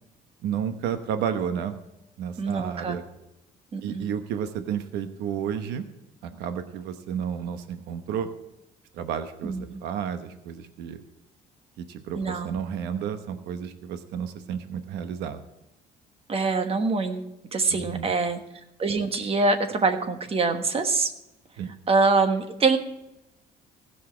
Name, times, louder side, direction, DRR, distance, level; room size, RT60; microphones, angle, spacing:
voice 1, 0.4-1.8 2.2-3.0 3.8-5.9 6.2-8.3 8.9-11.0 11.8-15.4 17.7-18.2 21.6-21.7, right 8 dB, 85° right, 9 dB, 1.0 m, -31 dB
voice 2, 2.4-3.0 3.7-4.1 9.4-9.8 12.2-12.6 16.3-18.4 18.8-21.1 21.9-22.8, right 4 dB, 35° right, 7 dB, 1.3 m, -24 dB
15.5 x 5.6 x 7.8 m, 0.90 s
cardioid pair, 110°, 17 cm